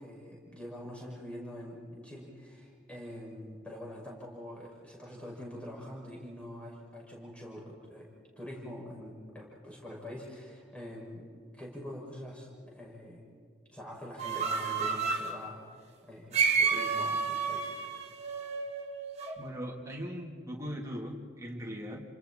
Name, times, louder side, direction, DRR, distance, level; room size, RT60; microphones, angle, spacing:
voice 1, 0.0-8.1 8.4-11.2 11.5-13.3 13.7-15.6 16.0-17.7, equal, 5° left, -3 dB, 6.2 m, -44 dB
sound 1, 14.2-15.3 16.3-19.4, right 5 dB, 35° right, 2.3 m, -30 dB
voice 2, 19.4-22.0, equal, 15° right, -2 dB, 3.3 m, -39 dB
30.0 x 26.5 x 4.4 m, 2.3 s
head